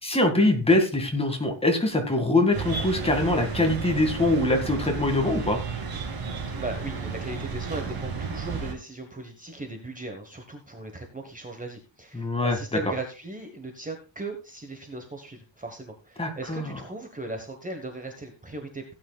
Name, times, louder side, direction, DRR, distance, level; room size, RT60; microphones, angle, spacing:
voice 1, 0.0-5.6 12.1-12.6 16.2-16.7, left 2 dB, 10° left, 4 dB, 2.1 m, -23 dB
sound 1, 2.5-8.7, right 5 dB, 50° right, 2.6 m, -32 dB
voice 2, 6.6-18.9, right 2 dB, 15° right, 4 dB, 1.3 m, -38 dB
17.0 x 9.3 x 2.3 m, 0.32 s
wide cardioid pair, 175°, 48 cm